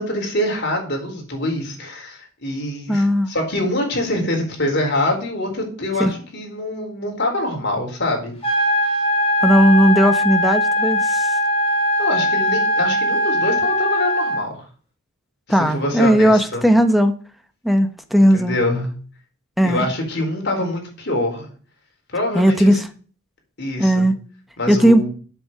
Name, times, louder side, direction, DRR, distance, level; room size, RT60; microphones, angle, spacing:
voice 1, 0.0-8.3 8.8-9.0 12.0-14.7 15.5-16.6 18.3-18.9 19.6-21.5 22.1-22.8 23.6-24.1 24.6-25.1, left 1 dB, 55° left, 1 dB, 4.2 m, -24 dB
voice 2, 2.9-3.3 6.0-6.1 9.4-11.3 15.5-17.1 17.6-18.6 19.6-19.9 22.3-22.8 23.8-24.2 24.7-25.0, equal, ahead, 7 dB, 1.1 m, -16 dB
sound 1, 8.4-14.4, left 1 dB, 30° left, 4.9 m, -20 dB
7.9 x 7.2 x 7.3 m, 0.41 s
head